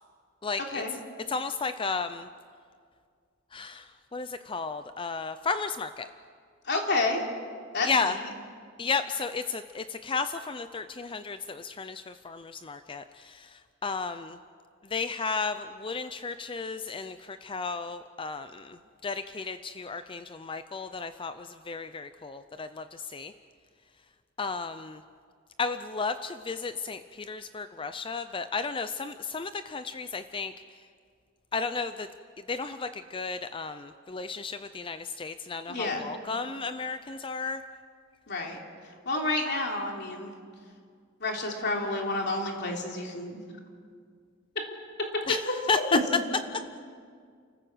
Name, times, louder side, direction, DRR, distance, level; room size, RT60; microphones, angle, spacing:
voice 1, 0.4-0.8 1.3-2.3 3.5-6.1 7.8-8.2 8.8-14.4 14.9-23.3 24.4-25.0 25.6-30.5 31.5-32.1 32.5-37.6 45.3-45.8, left 4 dB, 25° left, 10 dB, 0.5 m, -33 dB
voice 2, 6.7-7.2 7.7-8.2 35.7-36.0 38.3-38.6 39.0-40.3 41.2-43.4 45.7-46.0, left 2 dB, 55° left, 1 dB, 3.3 m, -29 dB
30.0 x 14.5 x 7.9 m, 2.1 s
head